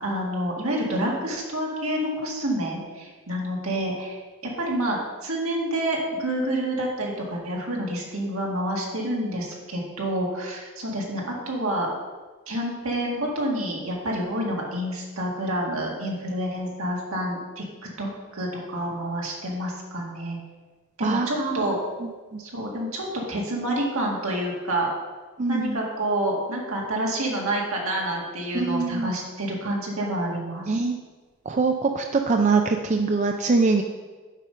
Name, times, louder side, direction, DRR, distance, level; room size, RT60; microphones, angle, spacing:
voice 1, 0.0-4.2 4.6-11.9 12.5-17.6 18.0-20.4 21.0-21.8 22.4-24.9 25.5-30.9, right 1 dB, 75° right, -2 dB, 1.8 m, -28 dB
voice 2, 21.0-21.7 22.0-22.4 25.4-25.8 28.5-29.2 30.7-31.0 31.5-33.8, right 4 dB, 35° right, 4 dB, 0.4 m, -23 dB
7.3 x 5.3 x 5.6 m, 1.4 s
head